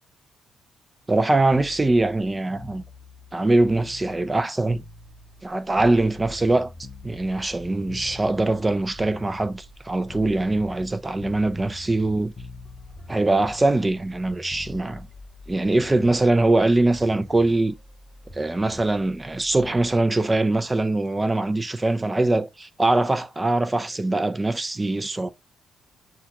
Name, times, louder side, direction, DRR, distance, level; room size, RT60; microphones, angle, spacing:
voice 1, 1.1-2.8 3.3-4.8 5.4-6.7 7.0-12.3 13.1-15.1 15.5-17.7 18.3-25.3, right 2 dB, 20° right, 0.5 m, -22 dB
sound 1, 1.5-5.5 5.8-9.8 10.1-10.9 11.2-12.1 12.3-16.3 17.6-17.8, left 4 dB, 35° left, 0.6 m, -45 dB
sound 2, 5.0-21.1 21.5-21.6, equal, 5° left, 2.5 m, -47 dB
6.5 x 2.4 x 2.9 m
cardioid pair, 90°, 0 cm